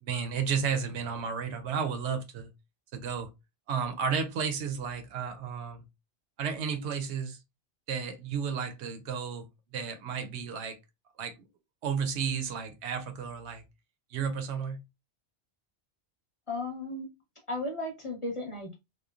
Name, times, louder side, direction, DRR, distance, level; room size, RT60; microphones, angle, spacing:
voice 1, 0.0-2.5 2.9-3.3 3.7-5.8 6.4-7.4 7.9-9.5 9.7-10.8 11.2-11.3 11.8-13.6 14.1-14.8, right 6 dB, 90° right, 0.9 m, -32 dB
voice 2, 16.5-17.1 17.5-18.7, left 2 dB, 30° left, 0.8 m, -35 dB
3.0 x 2.1 x 2.3 m
omnidirectional pair, 1.1 m